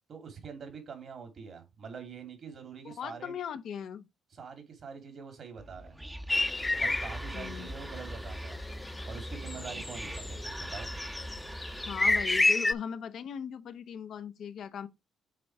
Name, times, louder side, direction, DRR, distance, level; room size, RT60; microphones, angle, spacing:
voice 1, 0.1-3.3 4.3-6.0 6.7-8.6 9.1-10.9, right 6 dB, 55° right, 2.7 m, -45 dB
voice 2, 2.8-4.1 7.3-7.7 11.9-14.9, left 7 dB, 65° left, 0.9 m, -39 dB
Whispering, 5.6-12.5, right 1 dB, 15° right, 0.9 m, -41 dB
sound 1, 6.3-12.7, left 2 dB, 20° left, 0.6 m, -31 dB
7.6 x 4.1 x 4.7 m
supercardioid pair, 65°, 0 cm